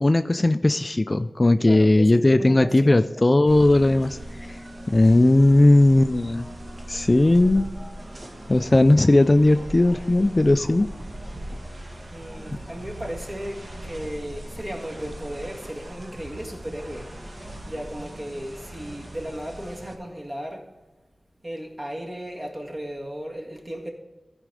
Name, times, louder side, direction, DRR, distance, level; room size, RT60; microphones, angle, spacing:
voice 1, 0.0-4.6 4.9-6.5 6.9-7.7 8.5-10.9, left 2 dB, 30° left, 10 dB, 0.3 m, -18 dB
voice 2, 1.6-3.0 12.1-17.1 17.7-20.6 21.4-23.9, equal, 30° right, 0 dB, 1.8 m, -35 dB
sound 1, 3.5-20.0, right 1 dB, 50° right, 1.5 m, -39 dB
15.0 x 5.0 x 4.8 m, 1.2 s
wide cardioid pair, 90°, 0 cm